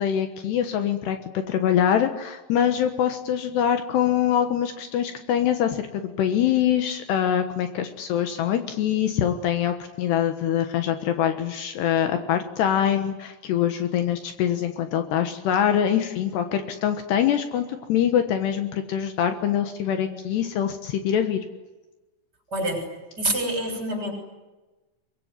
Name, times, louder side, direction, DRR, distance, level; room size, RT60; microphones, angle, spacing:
voice 1, 0.0-21.4, left 9 dB, 70° left, 7 dB, 3.3 m, -24 dB
voice 2, 22.5-22.9 23.2-24.1, right 1 dB, 20° right, 4 dB, 7.0 m, -26 dB
24.5 x 22.5 x 9.7 m, 1.1 s
omnidirectional pair, 5.3 m